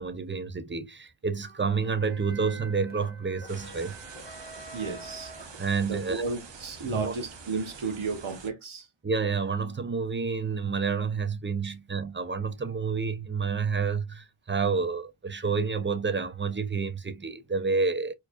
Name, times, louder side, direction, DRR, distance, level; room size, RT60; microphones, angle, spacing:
voice 1, 0.0-3.9 5.6-6.2 6.8-7.1 9.0-18.1, right 5 dB, 25° right, 0.7 m, -29 dB
sound 1, 1.4-6.2, right 1 dB, 20° left, 1.6 m, -47 dB
sound 2, 3.5-8.5, right 5 dB, 65° right, 0.9 m, -46 dB
voice 2, 4.7-5.3 5.8-8.9 11.6-11.7, right 4 dB, 85° right, 1.1 m, -33 dB
4.4 x 3.1 x 2.5 m
wide cardioid pair, 55°, 47 cm